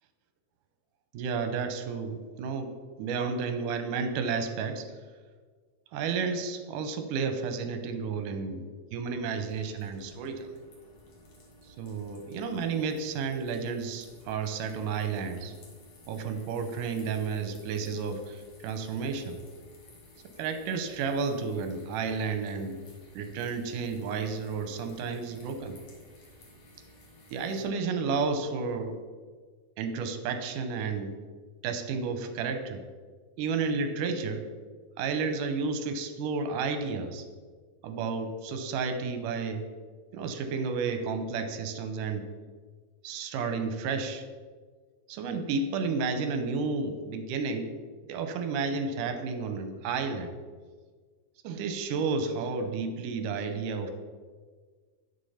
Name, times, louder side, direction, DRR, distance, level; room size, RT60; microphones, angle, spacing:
voice 1, 1.1-2.7 3.0-4.9 5.9-10.5 11.6-15.5 16.1-19.4 20.4-22.8 23.1-25.8 27.3-29.0 29.8-31.1 31.6-32.8 33.4-34.4 35.0-37.3 37.8-39.7 40.1-42.3 43.0-44.3 45.1-47.7 48.0-50.3 51.4-53.9, right 5 dB, 80° right, 7 dB, 2.4 m, -32 dB
sound 1, 9.3-27.6, left 1 dB, 60° left, 3.1 m, -55 dB
9.8 x 7.0 x 5.6 m, 1.5 s
omnidirectional pair, 3.8 m